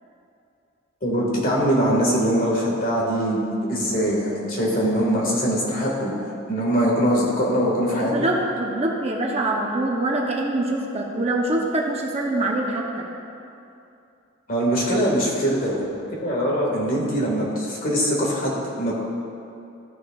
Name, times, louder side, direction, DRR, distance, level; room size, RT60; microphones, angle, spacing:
voice 1, 1.0-6.1 6.5-8.3 14.5-15.9 16.2-19.0, equal, 45° left, -4 dB, 1.7 m, -22 dB
voice 2, 8.1-13.0 14.8-15.3, right 2 dB, 30° right, -1 dB, 0.7 m, -24 dB
14.0 x 6.2 x 2.3 m, 2.7 s
head